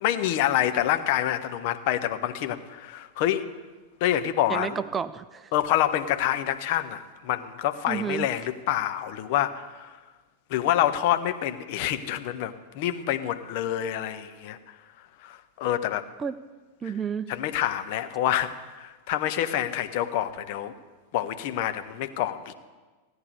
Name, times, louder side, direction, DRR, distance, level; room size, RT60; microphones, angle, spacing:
voice 1, 0.0-3.5 4.0-4.8 5.5-9.9 10.5-14.6 15.2-16.0 17.3-20.7 21.1-22.5, left 12 dB, 50° left, 9 dB, 0.8 m, -27 dB
voice 2, 4.5-5.5 7.9-8.3 16.2-16.3 16.8-17.3, right 7 dB, 20° right, 14 dB, 0.4 m, -30 dB
16.0 x 9.7 x 5.2 m, 1.3 s
figure-of-eight pair, 90°, 0 cm